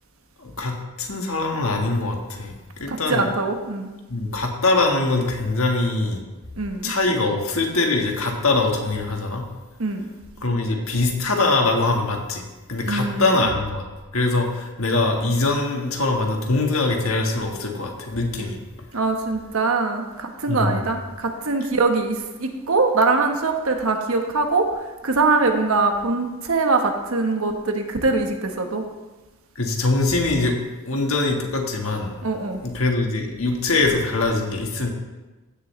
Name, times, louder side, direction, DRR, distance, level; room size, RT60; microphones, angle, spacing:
voice 1, 0.4-2.5 2.8-3.2 4.1-6.2 6.8-9.5 10.4-13.8 14.1-18.6 20.5-20.9 29.5-30.6 30.8-32.1 32.6-34.9, left 2 dB, 75° left, 2 dB, 1.5 m, -23 dB
voice 2, 2.9-3.9 6.6-6.9 9.8-10.1 12.8-13.2 18.3-18.5 18.9-28.8 32.2-32.6, right 3 dB, 80° right, 4 dB, 1.2 m, -23 dB
15.5 x 6.8 x 3.2 m, 1.1 s
head